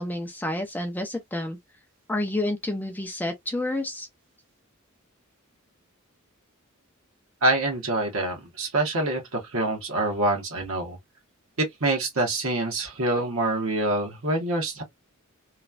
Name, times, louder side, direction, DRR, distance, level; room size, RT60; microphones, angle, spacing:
voice 1, 0.0-1.6 2.1-4.1, left 1 dB, 10° left, 0.4 m, -29 dB
voice 2, 7.4-11.0 11.6-14.8, right 2 dB, 65° right, 1.1 m, -26 dB
3.0 x 2.2 x 2.4 m
head